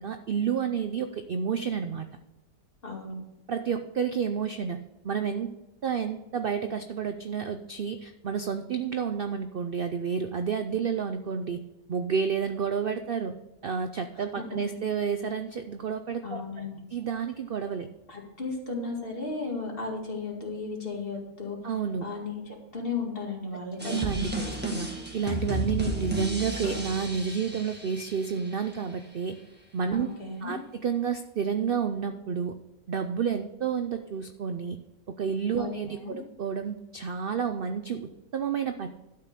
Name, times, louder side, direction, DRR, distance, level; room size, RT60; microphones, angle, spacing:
voice 1, 0.0-2.1 3.5-4.8 5.0-5.5 5.8-11.6 11.9-13.3 13.6-16.4 16.9-17.9 21.6-22.0 23.8-29.4 29.7-30.1 30.4-32.6 32.9-34.8 35.1-38.9, right 6 dB, 85° right, 9 dB, 0.4 m, -30 dB
voice 2, 2.8-3.1 14.1-14.6 16.2-16.8 18.1-21.6 22.0-24.0 25.8-26.0 29.9-30.6 35.6-36.2, left 4 dB, 35° left, 0 dB, 2.3 m, -35 dB
sound 1, 23.8-28.8, equal, 5° right, 1.5 m, -33 dB
12.0 x 5.8 x 6.6 m, 0.99 s
omnidirectional pair, 1.7 m